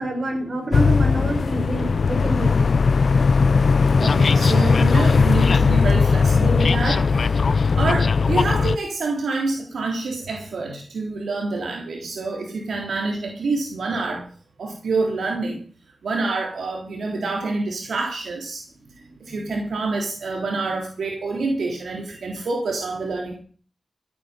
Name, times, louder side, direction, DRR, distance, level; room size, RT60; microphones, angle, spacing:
voice 1, 0.0-2.5 19.3-19.5 20.3-20.4, right 1 dB, 55° right, 3 dB, 5.7 m, -28 dB
sound 1, 0.7-8.8, left 5 dB, 65° left, 0.7 m, -18 dB
voice 2, 4.0-14.3 14.6-15.6 16.0-18.6 19.2-23.4, right 3 dB, 85° right, 1 dB, 3.4 m, -27 dB
14.5 x 9.6 x 6.8 m, 0.43 s
wide cardioid pair, 85°, 0 cm